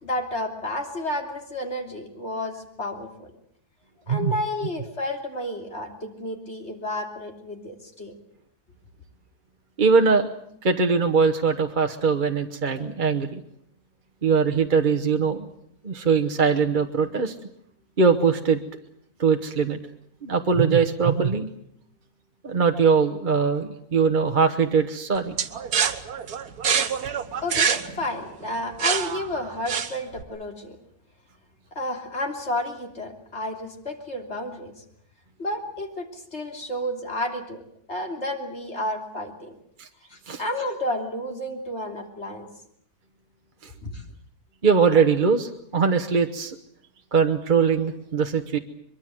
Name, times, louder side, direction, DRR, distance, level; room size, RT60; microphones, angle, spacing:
voice 1, 0.0-3.3 4.1-8.1 27.4-30.8 31.8-34.7 35.4-37.6 37.9-39.6 40.1-42.5 43.8-44.0, left 1 dB, 45° left, 3 dB, 3.5 m, -31 dB
voice 2, 9.8-10.3 10.6-13.4 14.2-15.5 15.8-17.3 18.0-18.6 19.2-19.8 20.2-21.5 22.4-25.3 39.8-39.9 40.3-40.4 44.6-46.6 47.1-48.6, right 5 dB, 35° right, 4 dB, 1.2 m, -21 dB
sound 1, 25.4-30.2, right 7 dB, 75° right, 1.7 m, -26 dB
23.0 x 23.0 x 7.7 m, 0.71 s
omnidirectional pair, 1.7 m